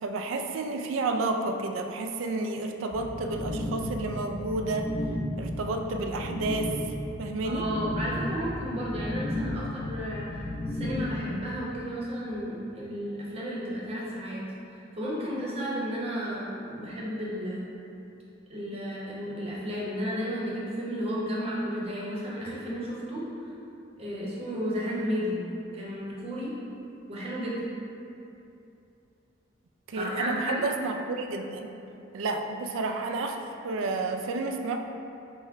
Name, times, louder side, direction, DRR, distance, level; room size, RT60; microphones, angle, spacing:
voice 1, 0.0-4.9 5.4-6.7 7.2-7.7 29.9-31.7 32.1-34.8, right 3 dB, 80° right, 5 dB, 0.3 m, -31 dB
sound 1, 2.9-11.5, left 1 dB, 40° left, 0.9 m, -34 dB
voice 2, 7.4-17.7 18.5-23.2 24.0-25.4 25.7-26.5 27.1-27.6 29.9-30.6, equal, 30° right, -6 dB, 0.7 m, -33 dB
5.7 x 2.1 x 3.4 m, 2.8 s
head